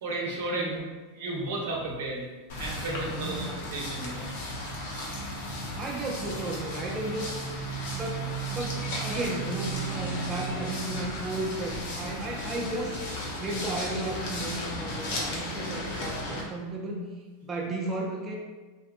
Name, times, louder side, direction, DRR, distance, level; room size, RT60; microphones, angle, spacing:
voice 1, 0.0-0.8 1.1-2.2 2.6-4.2, right 2 dB, 80° right, -2 dB, 0.6 m, -33 dB
voice 2, 0.6-0.9 3.0-3.5 5.7-7.3 7.9-13.0 13.4-17.0 17.4-18.4, right 2 dB, 25° right, -1 dB, 0.4 m, -34 dB
sound 1, 2.5-16.4, equal, 70° left, 0.7 m, -34 dB
2.7 x 2.5 x 2.2 m, 1.2 s
hypercardioid pair, 110°, 0 cm